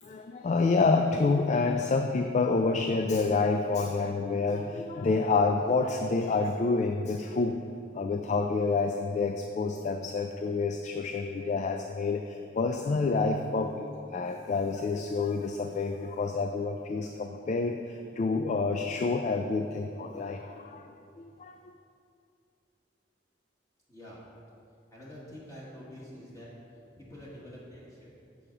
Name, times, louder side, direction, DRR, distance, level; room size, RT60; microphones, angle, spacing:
voice 1, 0.0-7.6 7.9-20.9 21.2-21.6, left 3 dB, 40° left, 5 dB, 0.3 m, -28 dB
voice 2, 24.9-26.5 27.0-28.3, equal, 20° left, -6 dB, 1.3 m, -47 dB
7.1 x 4.9 x 5.7 m, 2.5 s
head